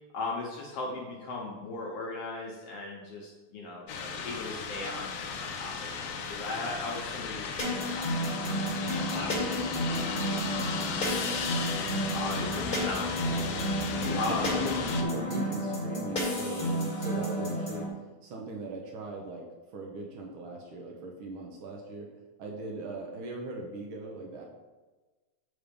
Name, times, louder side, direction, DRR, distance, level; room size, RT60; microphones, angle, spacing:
voice 1, 0.1-13.7 14.2-14.5, left 2 dB, 65° left, -2 dB, 1.6 m, -39 dB
sound 1, 3.9-15.0, left 5 dB, 85° left, 1.3 m, -35 dB
sound 2, 7.6-17.9, equal, 30° left, 1.0 m, -31 dB
voice 2, 13.9-17.9 18.2-19.5 19.7-22.1 22.4-24.4, right 2 dB, 75° right, 0 dB, 1.1 m, -39 dB
8.4 x 3.6 x 5.2 m, 1.2 s
omnidirectional pair, 3.5 m